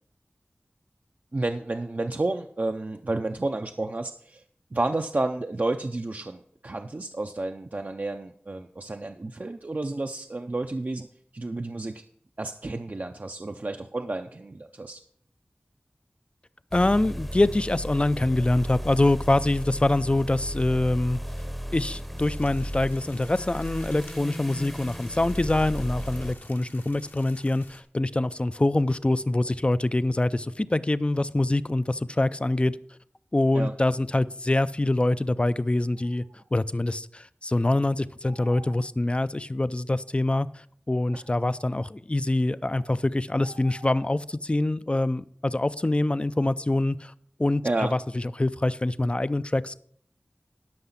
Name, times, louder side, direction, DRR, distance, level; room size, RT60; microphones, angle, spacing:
voice 1, 1.3-4.4 4.7-11.1 11.3-12.0 12.4-15.0 33.5-33.7 41.1-41.2 47.6-47.9, right 2 dB, 50° right, 5 dB, 0.5 m, -31 dB
voice 2, 16.7-21.2 21.7-32.8 33.3-36.2 36.5-47.1 47.4-49.8, left 2 dB, 30° left, 15 dB, 0.4 m, -25 dB
sound 1, 16.7-26.3, equal, ahead, 0.8 m, -35 dB
sound 2, 22.2-27.8, left 2 dB, 65° left, 1.1 m, -49 dB
sound 3, 35.9-36.5 38.3-38.9 40.3-40.4 41.0-41.9 42.8-42.9 43.4-44.3, right 2 dB, 85° right, 0.7 m, -50 dB
12.0 x 5.7 x 5.7 m, 0.64 s
wide cardioid pair, 45°, 4 cm